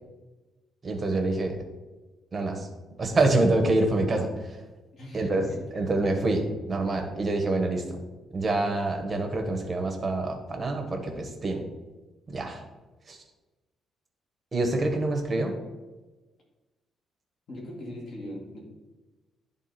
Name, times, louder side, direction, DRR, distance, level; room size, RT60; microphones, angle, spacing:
voice 1, 0.8-1.6 2.3-2.7 3.0-4.6 5.1-5.4 5.7-6.4 6.7-7.8 8.3-11.6 12.3-12.6 13.1-13.2 14.5-15.5, right 2 dB, 25° right, 3 dB, 1.1 m, -26 dB
voice 2, 4.9-5.9 17.5-18.6, equal, 45° left, -3 dB, 2.2 m, -40 dB
10.5 x 3.6 x 4.1 m, 1.2 s
cardioid pair, 155°, 0 cm